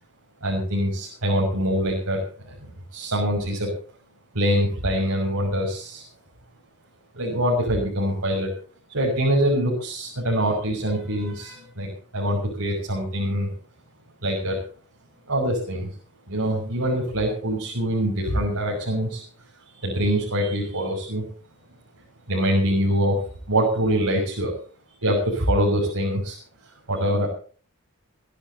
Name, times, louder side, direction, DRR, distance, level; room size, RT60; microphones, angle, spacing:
voice 1, 0.4-3.7 4.3-6.1 7.1-8.5 8.9-13.5 14.2-14.6 15.3-15.9 16.3-19.2 19.7-21.3 22.3-23.2 23.5-24.5 25.0-26.4 26.6-27.3, equal, 85° right, -2 dB, 6.4 m, -24 dB
23.0 x 15.0 x 2.9 m, 0.42 s
head